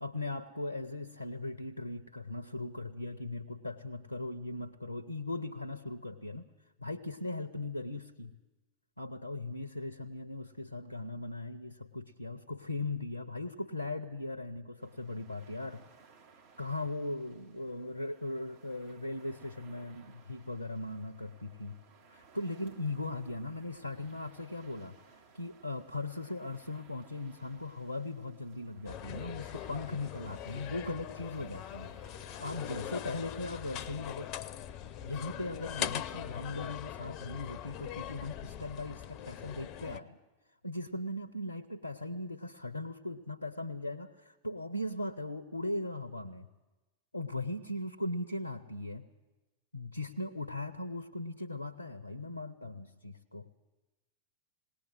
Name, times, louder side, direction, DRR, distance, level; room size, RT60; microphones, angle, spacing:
voice 1, 0.0-6.5 6.8-8.4 9.0-15.9 16.6-21.8 22.1-34.3 35.0-40.2 40.6-46.5 47.1-49.0 49.7-53.5, left 2 dB, 85° left, 11 dB, 0.6 m, -39 dB
sound 1, 14.8-34.3, right 5 dB, 55° right, 1.9 m, -61 dB
sound 2, 28.9-40.0, left 10 dB, 40° left, 0.6 m, -41 dB
19.5 x 18.0 x 7.8 m, 1.1 s
figure-of-eight pair, 90°, 0 cm